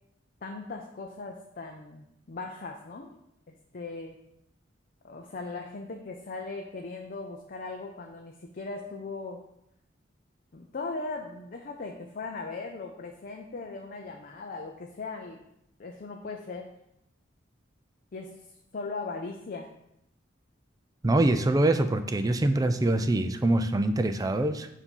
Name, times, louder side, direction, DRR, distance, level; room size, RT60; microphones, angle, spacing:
voice 1, 0.4-3.1 3.5-4.2 5.0-9.4 10.5-15.4 15.8-16.7 18.1-18.5 18.7-19.7, left 3 dB, 50° left, 2 dB, 0.5 m, -38 dB
voice 2, 21.0-24.7, right 2 dB, 20° right, 9 dB, 0.4 m, -24 dB
7.2 x 2.7 x 5.3 m, 0.81 s
head